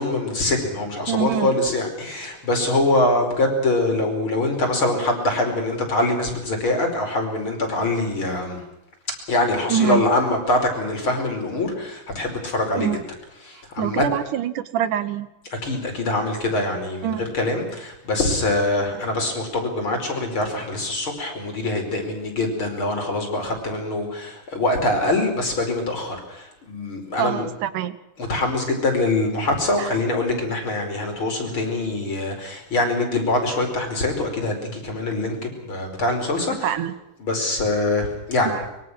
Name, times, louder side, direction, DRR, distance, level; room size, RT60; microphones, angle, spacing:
voice 1, 0.0-8.6 9.3-12.9 13.4-14.0 15.6-27.5 28.2-36.7 37.2-38.6, left 2 dB, 35° left, 3 dB, 5.7 m, -24 dB
voice 2, 1.1-1.6 9.7-10.0 12.8-13.0 13.8-15.3 17.0-17.3 27.2-28.0 29.8-29.9 36.6-36.9 38.5-38.6, right 10 dB, 75° right, 14 dB, 2.5 m, -24 dB
24.5 x 23.5 x 6.3 m, 0.90 s
omnidirectional pair, 3.8 m